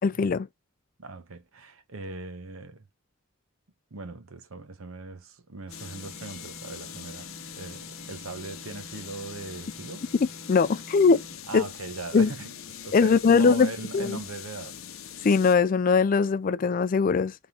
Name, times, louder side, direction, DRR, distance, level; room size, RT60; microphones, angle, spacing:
voice 1, 0.0-0.5 10.5-11.2 11.5-11.6 12.1-12.3 12.9-14.2 15.2-17.3, left 5 dB, 40° left, 0.4 m, -21 dB
voice 2, 1.0-2.9 3.9-10.0 11.5-12.5 12.8-14.8, right 3 dB, 80° right, 0.9 m, -39 dB
sound 1, 5.7-15.5, left 9 dB, 70° left, 0.7 m, -43 dB
sound 2, 5.7-11.5, right 2 dB, 5° right, 0.9 m, -49 dB
3.6 x 3.4 x 2.9 m
head